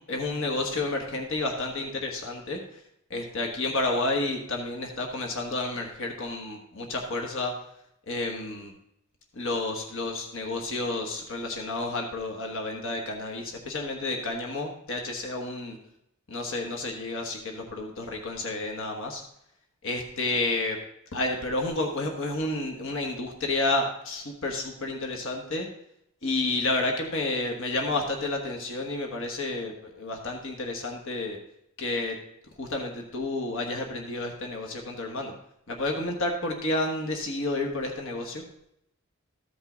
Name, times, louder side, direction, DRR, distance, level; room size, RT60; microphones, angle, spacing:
voice 1, 0.1-2.6 3.1-7.5 8.1-8.7 9.3-15.7 16.3-19.2 19.8-20.8 21.1-25.7 26.2-31.4 31.8-32.1 32.6-35.3 35.7-38.4, left 2 dB, 60° left, 2 dB, 1.3 m, -30 dB
14.0 x 5.4 x 3.9 m, 0.76 s
head